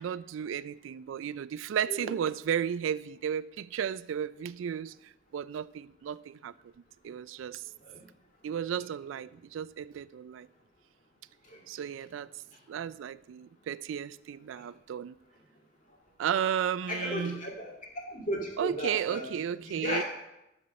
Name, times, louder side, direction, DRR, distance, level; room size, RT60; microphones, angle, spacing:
voice 1, 0.0-6.5 7.0-7.6 8.4-10.5 11.7-12.3 12.7-15.1 16.2-17.4 18.6-20.0, right 8 dB, 75° right, 0.3 m, -34 dB
voice 2, 16.9-17.7 18.1-19.2 19.6-20.0, equal, 40° left, 2.1 m, -35 dB
11.0 x 4.3 x 6.5 m
head